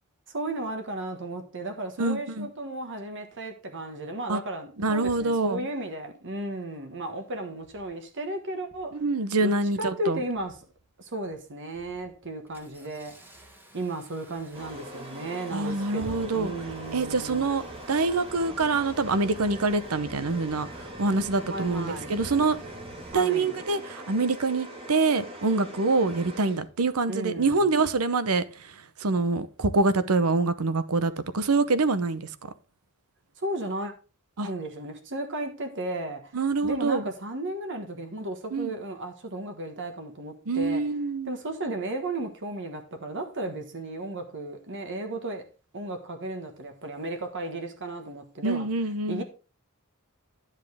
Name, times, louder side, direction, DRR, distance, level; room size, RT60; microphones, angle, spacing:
voice 1, 0.3-9.0 9.4-10.6 11.0-13.2 13.7-17.5 21.5-22.2 23.1-23.5 27.1-27.7 33.4-33.9 34.4-40.8 41.2-45.5 45.7-48.7 49.1-49.2, right 2 dB, 60° right, 1.4 m, -34 dB
voice 2, 2.0-2.5 4.3-4.4 4.8-5.7 8.9-10.2 15.5-16.5 16.9-22.6 23.1-28.7 29.0-32.5 34.4-34.5 36.3-37.0 38.5-38.7 40.5-41.3 48.4-49.2, right 3 dB, 85° right, 0.8 m, -25 dB
Engine starting, 6.8-6.9 7.6-7.9 8.6-9.0 9.3-9.8 10.3-10.8 11.2-11.4 11.7-23.1, equal, 10° right, 1.4 m, -49 dB
sound 1, 14.5-26.9, right 1 dB, 25° right, 1.9 m, -42 dB
10.5 x 7.4 x 3.5 m
head